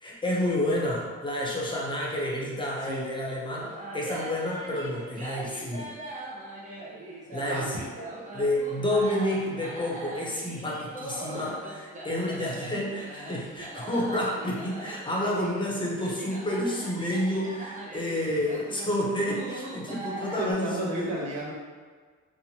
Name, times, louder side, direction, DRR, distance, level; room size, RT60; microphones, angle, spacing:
voice 1, 0.0-5.9 7.3-8.1 8.3-21.1, left 1 dB, 15° left, -3 dB, 0.6 m, -30 dB
sound 1, 3.6-20.5, right 1 dB, 25° right, 0.6 m, -41 dB
voice 2, 7.4-7.9 11.3-11.5 18.3-18.4 20.2-21.5, right 1 dB, 60° right, -3 dB, 0.8 m, -34 dB
2.9 x 2.1 x 2.8 m, 1.5 s
cardioid pair, 90°, 30 cm